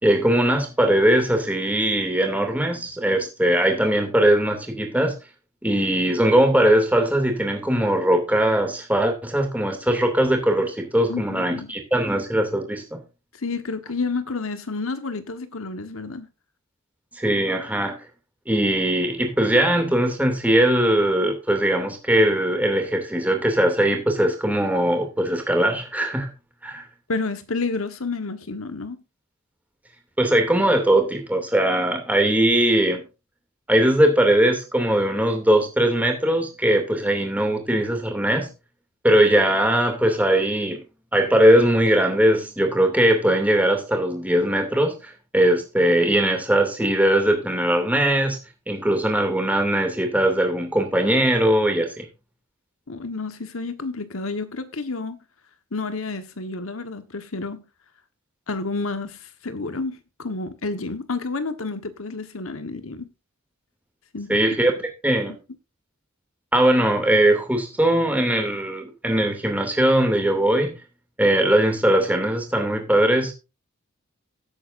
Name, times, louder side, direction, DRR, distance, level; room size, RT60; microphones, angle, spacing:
voice 1, 0.0-5.1 5.6-13.0 17.1-18.0 18.5-26.3 26.6-26.8 30.2-33.0 33.7-38.5 39.0-40.8 41.1-48.4 48.7-52.1 64.3-64.8 65.0-65.3 66.5-70.8 71.2-73.3, right 1 dB, 5° right, 2.7 m, -20 dB
voice 2, 11.1-11.7 13.4-16.3 27.1-29.0 52.9-55.2 55.7-57.6 58.5-63.1 64.1-64.4, left 3 dB, 70° left, 1.4 m, -30 dB
17.0 x 8.7 x 2.6 m
head